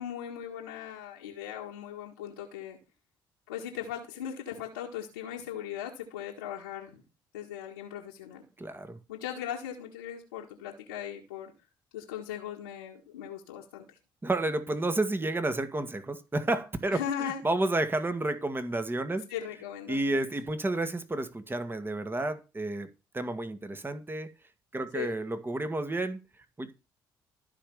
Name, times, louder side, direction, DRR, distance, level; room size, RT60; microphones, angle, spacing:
voice 1, 0.0-2.8 3.5-7.0 7.3-8.5 9.1-11.5 11.9-13.9 16.9-17.4 19.3-20.3 24.9-25.1, left 9 dB, 80° left, 1.7 m, -38 dB
voice 2, 8.6-9.0 14.2-19.3 19.9-24.3 24.7-26.2 26.6-26.7, right 2 dB, 20° right, 2.0 m, -31 dB
14.0 x 4.9 x 7.0 m
figure-of-eight pair, 45°, 11 cm